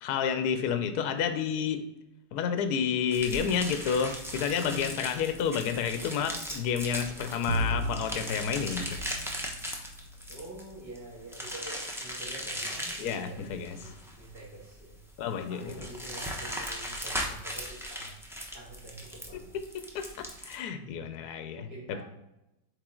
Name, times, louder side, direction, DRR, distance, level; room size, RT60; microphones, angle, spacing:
voice 1, 0.0-1.8 2.3-9.0 13.0-13.8 15.2-15.7 19.7-22.0, left 7 dB, 70° left, 8 dB, 1.1 m, -30 dB
voice 2, 0.7-1.0 10.3-14.9 15.5-18.1 18.5-19.6 20.8-20.9 21.2-22.0, right 2 dB, 60° right, -6 dB, 2.6 m, -47 dB
sound 1, 3.1-20.6, equal, 5° right, 0.5 m, -38 dB
Bowed string instrument, 7.5-10.5, right 1 dB, 80° right, 1.4 m, -35 dB
8.0 x 3.6 x 3.7 m, 0.90 s
omnidirectional pair, 1.9 m